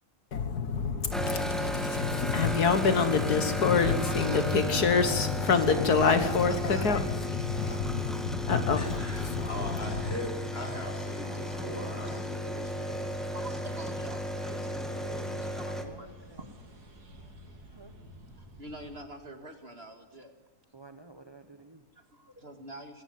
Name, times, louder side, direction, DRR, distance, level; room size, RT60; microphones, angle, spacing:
voice 1, 0.3-9.8, left 5 dB, 70° left, 10 dB, 1.9 m, -27 dB
sound 1, 1.1-15.8, left 1 dB, ahead, 2.1 m, -35 dB
sound 2, 3.8-19.0, right 1 dB, 70° right, 3.3 m, -52 dB
voice 2, 4.0-4.7 6.0-7.0 7.4-8.2 11.4-11.5 11.8-12.2 13.3-14.3 15.4-16.1 16.4-16.5 18.3-20.3 22.0-23.0, right 1 dB, 40° right, 6 dB, 2.2 m, -46 dB
voice 3, 7.4-7.9 11.0-13.6 15.8-16.5 17.7-17.9 20.7-21.9, right 2 dB, 20° right, 8 dB, 1.0 m, -48 dB
voice 4, 8.8-13.1 13.4-13.8 14.4-15.5, equal, 35° left, 3 dB, 5.3 m, -42 dB
19.5 x 17.5 x 9.5 m, 1.2 s
omnidirectional pair, 1.8 m